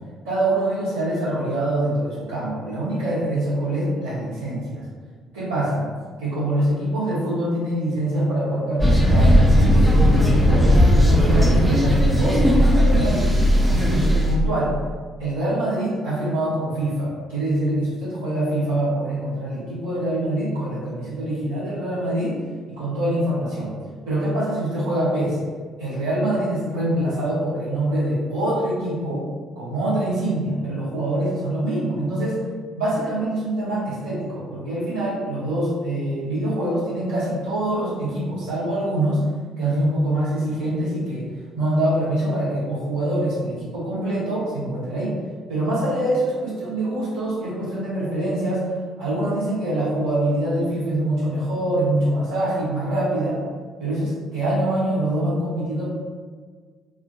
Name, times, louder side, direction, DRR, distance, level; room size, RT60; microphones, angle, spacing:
voice 1, 0.2-4.8 5.3-5.9 6.2-9.3 9.6-14.7 15.2-22.3 22.7-23.7 24.0-25.4 25.8-29.2 29.5-32.4 32.8-39.2 39.6-41.3 41.5-45.1 45.5-48.7 49.0-53.4 53.8-55.9, right 1 dB, 80° right, -13 dB, 1.3 m, -24 dB
sound 1, 8.8-14.3, equal, 15° right, 0.7 m, -16 dB
2.8 x 2.5 x 2.7 m, 1.5 s
figure-of-eight pair, 45°, 0 cm